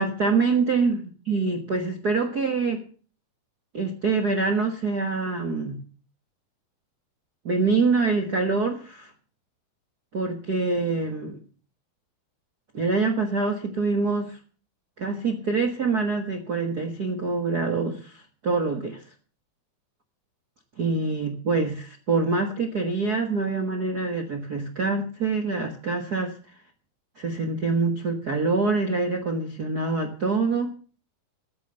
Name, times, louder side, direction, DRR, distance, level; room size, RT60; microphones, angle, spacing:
voice 1, 0.0-2.9 3.7-5.8 7.4-9.1 10.1-11.4 12.7-14.4 15.0-19.0 20.8-26.3 27.2-30.7, right 4 dB, 70° right, 4 dB, 0.9 m, -25 dB
14.0 x 7.7 x 7.8 m, 0.40 s
omnidirectional pair, 4.2 m